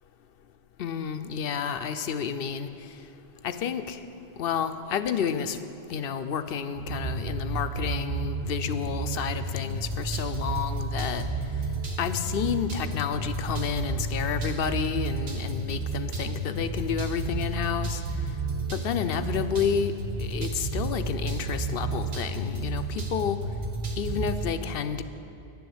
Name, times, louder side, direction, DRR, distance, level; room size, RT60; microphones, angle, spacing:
voice 1, 0.8-2.7 3.4-4.0 4.4-5.6 5.9-11.2 12.0-18.0 18.7-19.9 20.2-23.4 24.0-25.0, left 7 dB, 70° left, 10 dB, 0.7 m, -30 dB
sound 1, 6.8-24.5, right 2 dB, 70° right, 1.4 m, -31 dB
10.0 x 7.0 x 7.9 m, 2.7 s
omnidirectional pair, 1.1 m